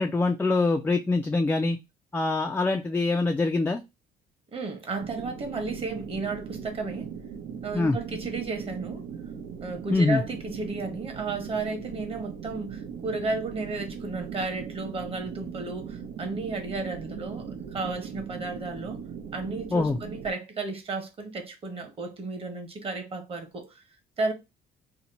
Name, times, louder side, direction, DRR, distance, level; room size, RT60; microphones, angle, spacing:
voice 1, 0.0-1.8 2.1-3.8 7.7-8.0 9.9-10.2 19.7-20.0, left 3 dB, 10° left, 0.3 m, -24 dB
voice 2, 4.5-7.1 7.6-9.0 9.6-19.0 19.3-23.7 24.2-24.3, right 3 dB, 35° right, 1.0 m, -33 dB
sound 1, 5.0-20.3, right 7 dB, 75° right, 0.7 m, -39 dB
2.8 x 2.1 x 4.0 m
cardioid pair, 110°, 17 cm